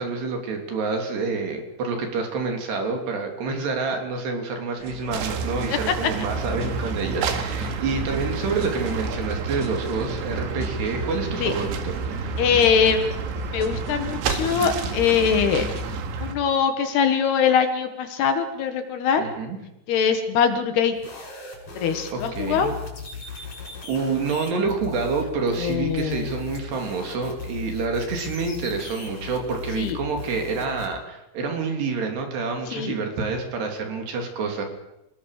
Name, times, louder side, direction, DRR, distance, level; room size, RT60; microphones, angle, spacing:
voice 1, 0.0-12.0 19.2-19.6 22.1-22.7 23.3-23.6 23.8-34.6, right 4 dB, 65° right, 3 dB, 5.0 m, -28 dB
sound 1, 4.8-16.0, right 3 dB, 35° right, 1.7 m, -40 dB
sound 2, 5.1-16.4, right 4 dB, 85° right, 4.3 m, -30 dB
voice 2, 12.4-15.7 16.2-19.2 19.9-20.9 21.8-22.7 25.6-26.3 29.8-30.0 32.7-32.9, left 7 dB, 65° left, 7 dB, 3.4 m, -22 dB
sound 3, 20.9-30.9, left 5 dB, 30° left, 6.9 m, -37 dB
26.5 x 20.0 x 6.6 m, 0.90 s
omnidirectional pair, 5.3 m